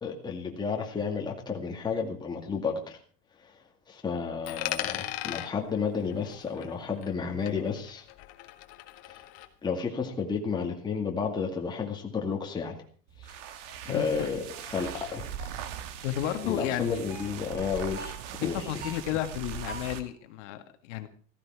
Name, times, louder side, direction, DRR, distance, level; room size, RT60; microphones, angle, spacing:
voice 1, 0.0-2.8 3.4-8.0 9.1-9.2 9.6-12.8 13.2-13.4 13.8-14.4 14.7-15.3 16.4-18.1 18.4-18.7, left 5 dB, 10° left, 1 dB, 2.2 m, -32 dB
Coin (dropping), 4.4-7.2 7.5-9.5, left 15 dB, 40° left, 1.6 m, -38 dB
sound 1, 13.1-20.1, right 8 dB, 65° right, 2.1 m, -40 dB
sound 2, 13.7-13.9 14.5-14.8 15.4-15.7 16.2-16.5 17.1-17.4 18.0-18.2 18.8-19.2 19.7-20.0, right 3 dB, 25° right, 4.2 m, -45 dB
voice 2, 13.9-14.3 16.0-17.0 18.4-21.1, left 12 dB, 65° left, 7 dB, 1.9 m, -32 dB
15.5 x 15.0 x 4.8 m, 0.41 s
supercardioid pair, 170°, 38 cm